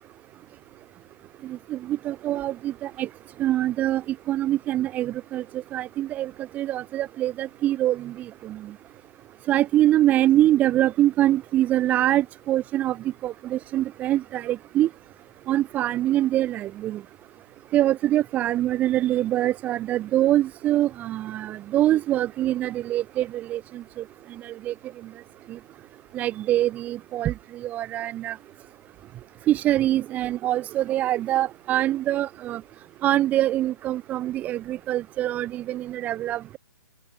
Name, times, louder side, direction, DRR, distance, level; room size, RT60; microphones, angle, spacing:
voice 1, 1.5-3.1 3.4-4.0 4.3-5.4 5.7-8.1 8.4-8.6 9.5-13.0 13.2-14.9 15.5-17.0 17.7-23.8 24.4-24.7 26.1-27.3 27.6-28.4 29.5-32.6 33.0-36.6, right 13 dB, 15° right, 0.9 m, -24 dB
open air
hypercardioid pair, 160°, 12 cm